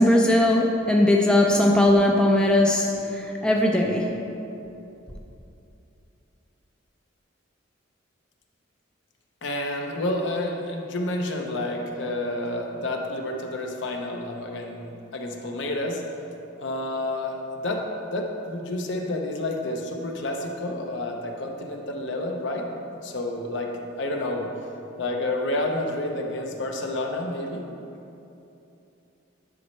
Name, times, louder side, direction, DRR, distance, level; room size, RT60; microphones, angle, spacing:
voice 1, 0.0-4.1, left 1 dB, 5° left, -1 dB, 0.4 m, -19 dB
voice 2, 9.4-16.0 16.6-22.7 22.9-23.7 24.0-24.5 25.0-27.6, left 1 dB, 60° left, 2 dB, 0.7 m, -29 dB
10.0 x 5.3 x 3.2 m, 2.8 s
head